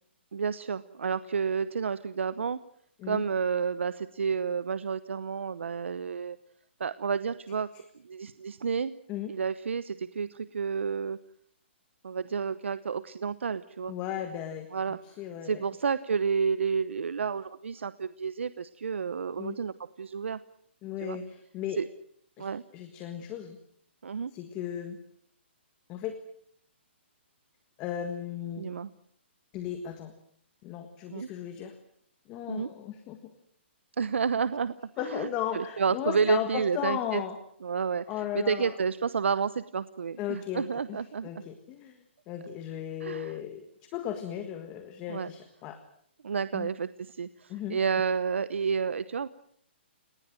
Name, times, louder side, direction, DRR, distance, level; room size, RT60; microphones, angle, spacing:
voice 1, 0.3-2.6 3.1-6.4 6.8-7.7 8.0-8.9 9.3-11.2 12.0-13.9 14.7-15.0 15.4-20.4 21.0-21.2 21.8-21.9 22.4-22.6 24.0-24.3 28.6-28.9 31.1-31.3 32.5-32.7 34.0-34.7 35.0-37.2 37.6-41.4 43.0-43.4 45.1-45.3 46.2-49.3, right 6 dB, 90° right, 15 dB, 0.9 m, -30 dB
voice 2, 13.9-14.7 15.2-15.6 19.4-19.6 20.8-21.8 22.4-22.5 22.7-23.6 24.3-25.0 25.9-26.1 27.8-28.6 29.5-30.1 30.6-31.7 32.3-33.2 35.0-37.3 38.1-38.7 40.2-42.0 42.3-43.6 43.9-45.8 46.5-46.7 47.5-47.8, left 10 dB, 15° left, 8 dB, 1.5 m, -35 dB
30.0 x 19.5 x 7.7 m, 0.66 s
hypercardioid pair, 175°, 6 cm